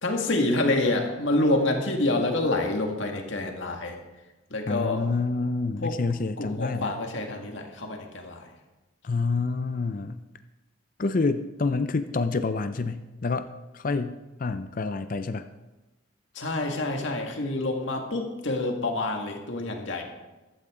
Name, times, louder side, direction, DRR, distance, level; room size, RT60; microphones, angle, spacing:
voice 1, 0.0-4.0 4.5-5.0 5.8-6.0 6.4-8.5 16.3-20.0, left 2 dB, 65° left, 2 dB, 1.9 m, -27 dB
voice 2, 4.7-6.9 9.0-10.2 11.0-13.5 13.7-15.4, left 3 dB, 40° left, 10 dB, 0.5 m, -28 dB
14.5 x 12.5 x 3.7 m, 1.1 s
head